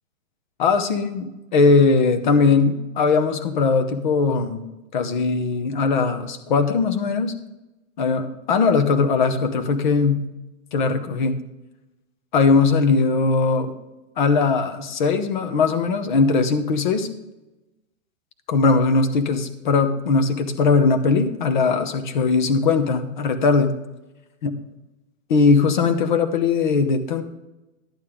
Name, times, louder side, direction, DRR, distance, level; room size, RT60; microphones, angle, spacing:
voice 1, 0.6-4.7 4.9-7.3 8.0-10.3 10.7-11.4 12.3-13.7 14.2-17.1 18.5-23.8 24.4-24.6 25.3-27.2, left 4 dB, 35° left, 8 dB, 0.8 m, -20 dB
11.5 x 8.7 x 3.6 m, 1.0 s
hypercardioid pair, 175°, 40 cm